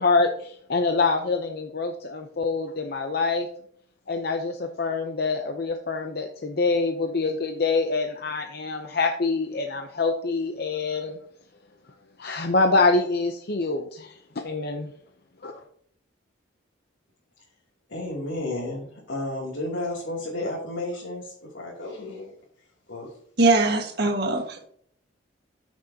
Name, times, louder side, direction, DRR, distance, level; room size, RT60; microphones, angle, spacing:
voice 1, 0.0-3.5 4.1-11.2 12.2-14.9 15.4-15.6, left 3 dB, 50° left, 4 dB, 0.7 m, -25 dB
voice 2, 17.9-22.3 22.9-23.1, left 2 dB, 85° left, -6 dB, 2.7 m, -32 dB
voice 3, 23.4-24.7, right 3 dB, 55° right, 2 dB, 1.6 m, -21 dB
14.0 x 6.3 x 2.8 m, 0.65 s
head